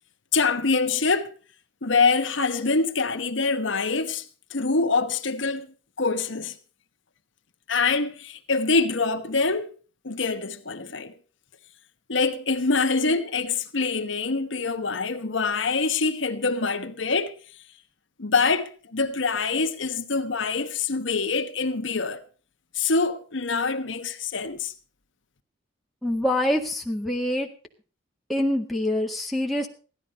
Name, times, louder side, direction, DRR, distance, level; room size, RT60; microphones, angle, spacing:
voice 1, 0.3-1.3 1.8-4.3 4.5-5.7 6.0-6.5 7.7-9.7 10.0-11.1 12.1-17.3 18.2-22.2 22.7-24.7, left 4 dB, 75° left, 1.2 m, -25 dB
voice 2, 26.0-27.5 28.3-29.7, left 1 dB, ahead, 1.8 m, -25 dB
16.0 x 12.0 x 5.4 m
head